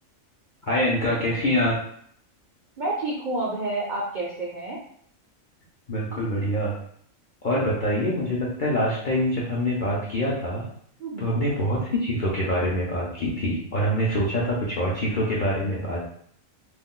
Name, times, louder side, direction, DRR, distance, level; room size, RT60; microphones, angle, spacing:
voice 1, 0.7-1.8 5.9-6.7 7.4-10.6 11.2-16.0, equal, 55° left, -5 dB, 0.6 m, -25 dB
voice 2, 2.8-4.8 11.0-11.4, right 2 dB, 60° right, -4 dB, 0.5 m, -29 dB
2.4 x 2.2 x 3.6 m, 0.63 s
omnidirectional pair, 1.4 m